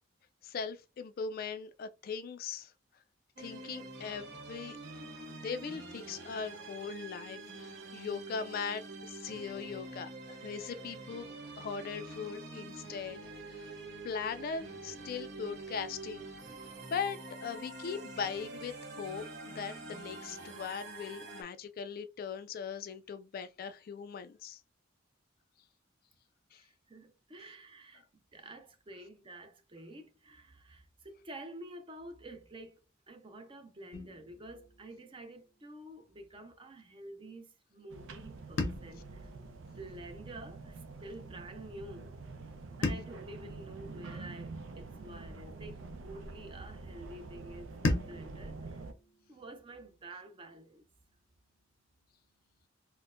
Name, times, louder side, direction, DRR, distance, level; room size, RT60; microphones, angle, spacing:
voice 1, 0.4-2.7 3.4-4.8 5.4-11.3 11.6-13.2 13.5-13.7 14.0-16.3 16.9-24.6 26.5-26.6, left 6 dB, 50° left, 0.3 m, -40 dB
sound 1, 3.4-21.4, right 2 dB, 60° right, 0.8 m, -46 dB
voice 2, 26.6-32.8 33.1-42.4 42.8-48.9 49.3-50.9, right 1 dB, 25° right, 0.5 m, -49 dB
sound 2, 33.9-36.1 38.6-40.9 42.8-45.3 47.8-50.4, left 2 dB, 85° left, 0.7 m, -40 dB
sound 3, 37.9-48.9, right 3 dB, 90° right, 0.5 m, -47 dB
4.2 x 2.1 x 2.4 m
head